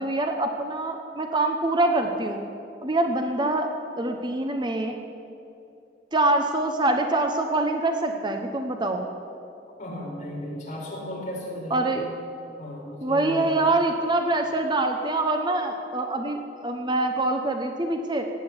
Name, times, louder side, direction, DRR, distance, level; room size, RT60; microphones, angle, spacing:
voice 1, 0.0-2.4 2.8-5.0 6.1-9.0 11.7-12.1 13.0-18.3, right 2 dB, 25° right, 4 dB, 1.0 m, -25 dB
voice 2, 9.8-11.9 12.6-13.6, left 1 dB, 45° left, -3 dB, 5.0 m, -35 dB
16.5 x 8.8 x 9.6 m, 2.6 s
head